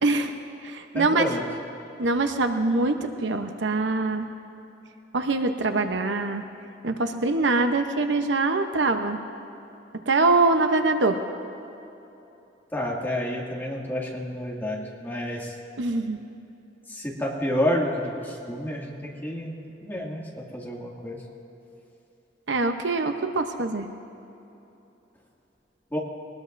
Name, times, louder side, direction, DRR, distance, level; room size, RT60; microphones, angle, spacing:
voice 1, 0.0-0.3 0.6-1.3 2.0-4.3 5.1-6.4 6.8-9.2 10.1-11.2 15.8-16.2 22.5-23.9, right 3 dB, 85° right, 6 dB, 0.9 m, -24 dB
voice 2, 0.9-1.4 12.7-15.5 16.9-19.5 19.8-21.2 25.9-26.0, left 1 dB, 10° left, -3 dB, 2.2 m, -29 dB
22.0 x 19.5 x 2.6 m, 3.0 s
head